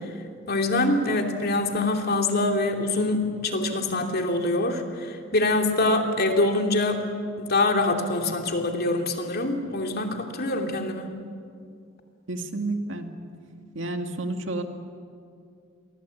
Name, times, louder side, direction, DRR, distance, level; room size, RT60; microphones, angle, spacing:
voice 1, 0.5-7.0 7.4-11.1, left 2 dB, 55° left, 3 dB, 2.9 m, -24 dB
voice 2, 12.3-13.1 13.7-14.6, right 2 dB, 70° right, 5 dB, 2.4 m, -30 dB
29.5 x 23.0 x 8.5 m, 2.3 s
head